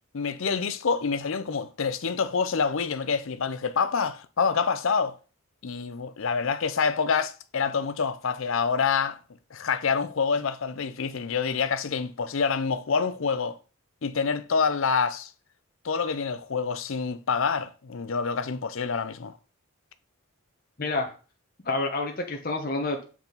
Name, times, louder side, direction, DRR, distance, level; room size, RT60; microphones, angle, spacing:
voice 1, 0.1-5.2 5.6-9.2 9.5-13.6 14.0-15.3 15.8-19.3, left 5 dB, 65° left, 0.6 m, -27 dB
voice 2, 20.8-21.1 21.6-23.0, left 2 dB, 40° left, 1.0 m, -28 dB
7.1 x 4.6 x 3.9 m
head